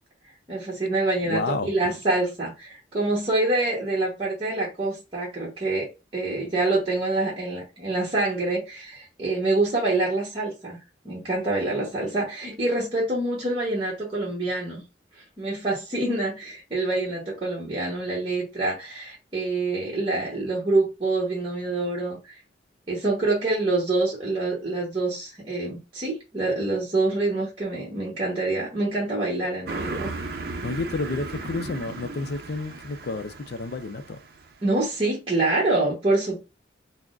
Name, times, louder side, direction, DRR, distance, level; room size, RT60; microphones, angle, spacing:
voice 1, 0.5-5.9 6.1-10.8 11.0-14.8 15.4-22.4 22.9-30.1 34.6-36.4, right 2 dB, 30° right, 1.0 m, -26 dB
voice 2, 1.2-1.7 30.6-34.2, left 3 dB, 60° left, 0.4 m, -30 dB
Car passing by, 29.7-34.6, right 3 dB, 55° right, 0.6 m, -36 dB
5.8 x 2.1 x 2.4 m
head